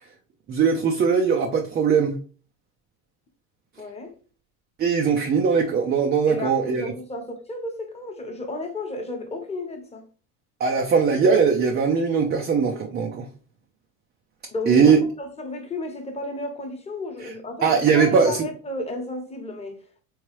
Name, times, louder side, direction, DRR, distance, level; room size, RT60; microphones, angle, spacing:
voice 1, 0.5-2.2 4.8-6.9 10.6-13.3 14.7-15.0 17.2-17.3 17.6-18.5, right 6 dB, 25° right, 0.4 m, -20 dB
voice 2, 3.8-4.1 6.3-10.1 14.5-20.0, left 2 dB, 15° left, 1.0 m, -33 dB
3.5 x 3.1 x 3.0 m
supercardioid pair, 95°, 44 cm